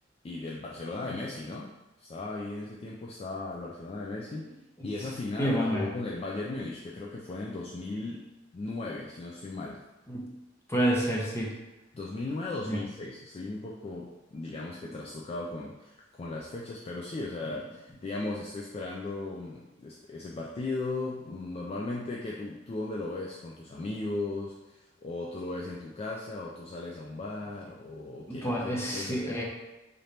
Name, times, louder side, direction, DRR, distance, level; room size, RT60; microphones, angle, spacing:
voice 1, 0.2-4.5 4.8-9.8 11.9-29.4, left 2 dB, 30° left, -3 dB, 0.3 m, -37 dB
voice 2, 5.4-6.0 10.1-10.3 10.7-11.5 12.7-12.8 28.3-29.4, equal, 15° left, -3 dB, 0.7 m, -29 dB
3.8 x 2.8 x 3.3 m, 1.0 s
head